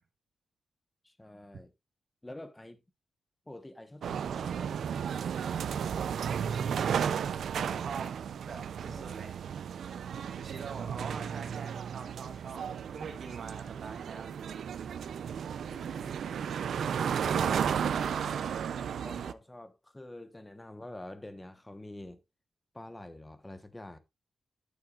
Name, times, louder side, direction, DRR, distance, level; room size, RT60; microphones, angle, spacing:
voice 1, 1.0-1.7 2.2-2.8 3.5-4.8 7.5-7.9 8.8-9.2 15.6-16.2 17.2-17.7 18.9-22.2 22.7-24.0, left 1 dB, 10° left, 1.1 m, -47 dB
sound 1, 4.0-19.3, right 8 dB, 80° right, 0.5 m, -34 dB
voice 2, 6.2-7.1 7.7-8.1 8.4-9.4 10.3-14.3 17.4-18.5, right 5 dB, 60° right, 1.6 m, -44 dB
10.5 x 8.9 x 2.4 m
wide cardioid pair, 135°, 0 cm